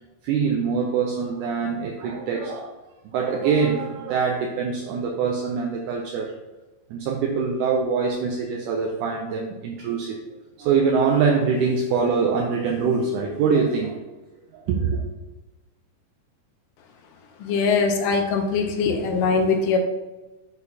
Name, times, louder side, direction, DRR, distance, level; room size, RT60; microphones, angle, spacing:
voice 1, 0.2-2.7 3.1-6.3 6.9-10.2 10.6-14.0 14.5-15.0, right 5 dB, 80° right, 1 dB, 2.0 m, -24 dB
voice 2, 17.4-19.8, left 4 dB, 85° left, 4 dB, 2.3 m, -22 dB
9.7 x 4.0 x 2.7 m, 1.1 s
omnidirectional pair, 3.9 m